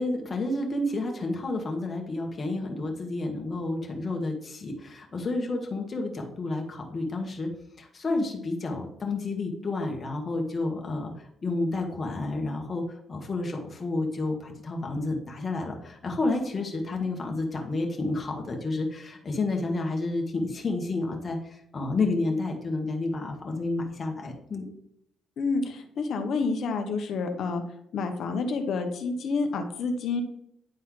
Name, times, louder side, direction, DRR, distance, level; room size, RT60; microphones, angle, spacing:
voice 1, 0.0-7.5 7.8-11.1 11.4-12.8 13.1-24.7, left 2 dB, 35° left, 1 dB, 1.8 m, -30 dB
voice 2, 25.4-27.6 27.9-30.2, left 4 dB, 70° left, 6 dB, 1.1 m, -29 dB
10.0 x 4.2 x 3.8 m, 0.73 s
cardioid pair, 90°, 0 cm